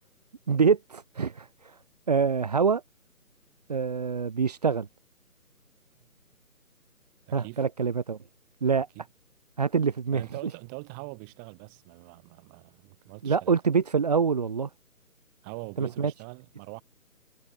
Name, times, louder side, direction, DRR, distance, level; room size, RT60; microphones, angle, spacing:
voice 1, 0.5-1.7 2.1-2.8 3.7-4.9 7.3-8.2 8.6-8.9 9.6-10.2 13.2-14.7 15.8-16.1, right 6 dB, 25° right, 1.5 m, -25 dB
voice 2, 7.3-7.7 8.9-9.1 10.1-13.6 15.4-16.8, right 37 dB, 10° right, 3.6 m, -43 dB
figure-of-eight pair, 150°, 44 cm